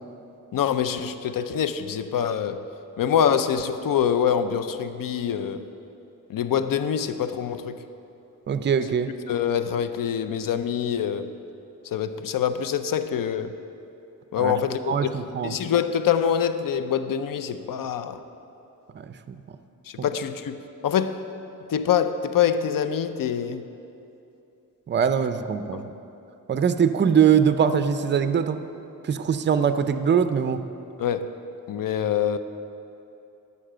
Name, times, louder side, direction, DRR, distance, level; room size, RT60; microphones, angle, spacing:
voice 1, 0.5-2.6 3.0-5.6 6.3-7.8 9.3-11.3 11.8-13.5 14.3-15.2 15.4-18.2 19.9-21.2 21.7-23.6 25.7-25.9 31.0-31.3 31.7-32.4, left 8 dB, 70° left, 11 dB, 0.5 m, -25 dB
voice 2, 8.5-9.1 14.4-14.5 14.9-15.5 19.0-19.4 24.9-25.9 26.5-28.6 29.1-30.6, right 7 dB, 35° right, 10 dB, 0.4 m, -22 dB
11.5 x 5.6 x 7.5 m, 2.8 s
wide cardioid pair, 165°, 35 cm